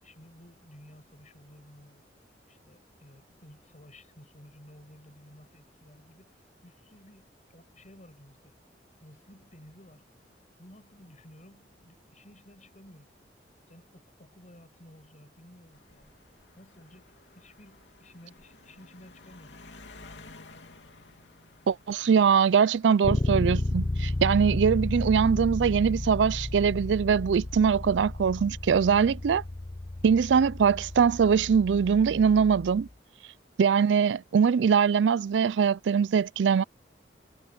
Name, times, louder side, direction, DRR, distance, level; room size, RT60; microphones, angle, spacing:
voice 1, 0.0-2.0 2.5-8.5 9.0-10.1 10.6-13.1 13.7-16.2 16.6-19.6, equal, 45° left, 5.7 m, -54 dB
sound 1, 15.7-26.4 27.2-27.6, left 3 dB, 80° left, 3.1 m, -54 dB
voice 2, 21.7-29.4 30.0-32.9 33.6-36.6, right 6 dB, 80° right, 0.4 m, -22 dB
Bass guitar, 23.0-32.9, left 1 dB, 25° left, 0.6 m, -32 dB
head